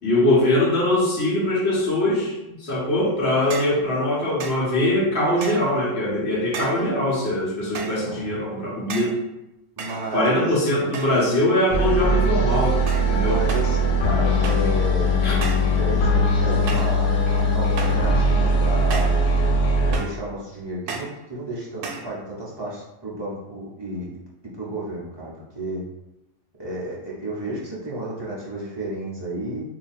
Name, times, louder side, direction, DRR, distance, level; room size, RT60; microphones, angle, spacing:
voice 1, 0.0-9.2 10.1-12.8 13.1-13.4 15.2-15.4, left 1 dB, 45° left, -7 dB, 1.3 m, -22 dB
sound 1, 3.5-3.8 4.4-4.7 5.4-5.8 6.5-6.9 7.7-8.1 8.9-9.2 9.8-10.4 10.9-11.3 11.6-12.1 12.9-13.2 13.5-13.8 14.4-14.7 15.4-15.7 16.7-17.0 17.8-18.1 18.9-19.2 19.9-20.2 20.9-21.2 21.8-22.1, right 4 dB, 75° right, 1.1 m, -34 dB
voice 2, 9.8-10.9 13.2-19.2 19.8-24.1 24.6-25.8 26.6-29.6, right 1 dB, 40° right, -7 dB, 0.3 m, -32 dB
sound 2, 11.7-20.0, equal, 75° left, 1.3 m, -20 dB
2.8 x 2.7 x 4.2 m, 0.90 s
omnidirectional pair, 1.7 m